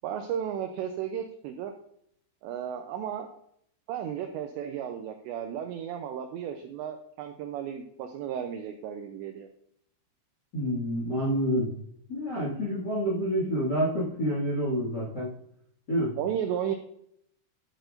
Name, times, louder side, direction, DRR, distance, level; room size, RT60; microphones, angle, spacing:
voice 1, 0.0-1.7 2.4-3.3 3.9-9.5 16.2-16.8, right 9 dB, 85° right, 5 dB, 2.5 m, -34 dB
voice 2, 10.5-11.7 12.1-15.3 15.9-16.2, equal, 65° left, -4 dB, 1.0 m, -28 dB
12.5 x 8.9 x 2.6 m, 0.69 s
omnidirectional pair, 5.9 m